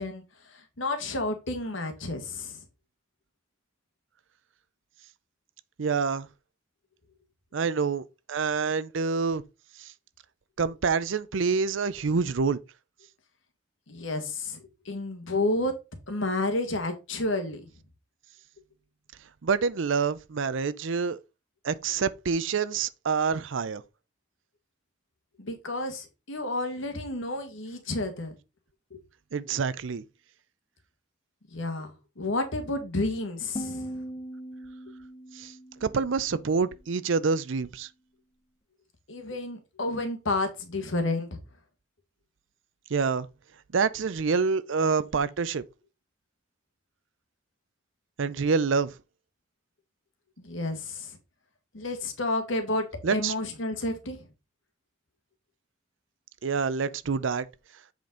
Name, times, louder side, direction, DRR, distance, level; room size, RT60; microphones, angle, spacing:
voice 1, 0.0-2.6 13.9-15.8 16.1-17.7 25.4-28.3 28.9-29.0 31.5-34.0 39.1-41.4 50.4-51.2 51.7-54.3, left 2 dB, 80° left, 1.8 m, -31 dB
voice 2, 5.8-6.3 7.5-9.4 10.6-12.6 19.4-21.2 21.6-23.8 29.3-30.0 35.4-35.5 35.8-37.9 42.9-43.3 43.7-45.6 48.2-48.9 53.0-53.3 56.4-57.4, right 5 dB, 75° right, 0.5 m, -27 dB
sound 1, 33.6-36.6, right 1 dB, 25° left, 0.5 m, -40 dB
7.8 x 5.2 x 3.9 m
head